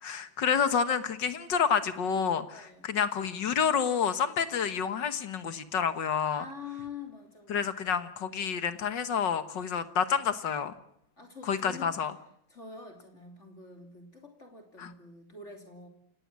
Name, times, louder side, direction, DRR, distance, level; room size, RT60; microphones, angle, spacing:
voice 1, 0.0-6.5 7.5-10.7 11.4-12.1 14.8-14.9, left 7 dB, 65° left, 11 dB, 2.0 m, -29 dB
voice 2, 2.5-2.9 6.3-8.0 11.2-12.0 12.5-15.9, left 5 dB, 35° left, 3 dB, 3.5 m, -46 dB
28.5 x 18.0 x 7.6 m, 0.73 s
omnidirectional pair, 2.1 m